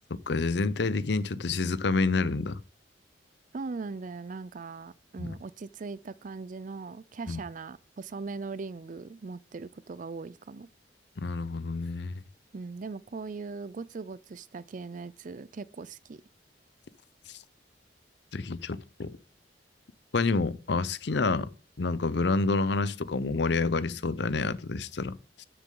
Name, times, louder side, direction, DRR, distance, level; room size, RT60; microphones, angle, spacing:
voice 1, 0.3-2.6 5.2-5.3 7.3-7.4 11.2-12.1 17.3-17.4 18.3-19.2 20.1-21.5 21.8-25.4, left 3 dB, 65° left, 0.6 m, -28 dB
voice 2, 3.5-10.7 12.5-16.2, right 4 dB, 45° right, 0.4 m, -40 dB
13.0 x 6.9 x 3.8 m
head